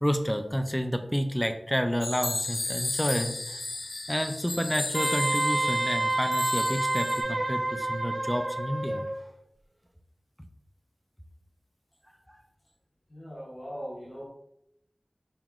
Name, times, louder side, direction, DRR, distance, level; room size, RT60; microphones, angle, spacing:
voice 1, 0.0-3.6 4.1-9.0, equal, 5° left, 7 dB, 0.3 m, -30 dB
sound 1, 2.0-7.2, left 2 dB, 85° left, 0.4 m, -34 dB
Wind instrument woodwind instrument, 4.9-9.1, right 2 dB, 60° right, 0.7 m, -28 dB
voice 2, 13.1-14.3, equal, 50° left, -6 dB, 0.9 m, -40 dB
5.4 x 3.0 x 2.4 m, 0.78 s
wide cardioid pair, 65°, 0 cm